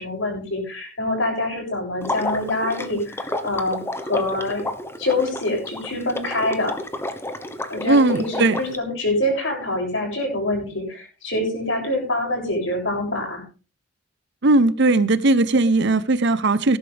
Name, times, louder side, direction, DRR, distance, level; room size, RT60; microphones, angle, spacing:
voice 1, 0.0-4.6 5.0-6.8 7.7-13.4, left 1 dB, 65° left, 1 dB, 7.2 m, -25 dB
Water / Liquid, 2.0-8.8, left 1 dB, 10° left, 1.1 m, -31 dB
voice 2, 7.9-8.6 14.4-16.8, right 2 dB, 55° right, 15 dB, 0.9 m, -18 dB
18.5 x 11.5 x 3.5 m, 0.35 s
head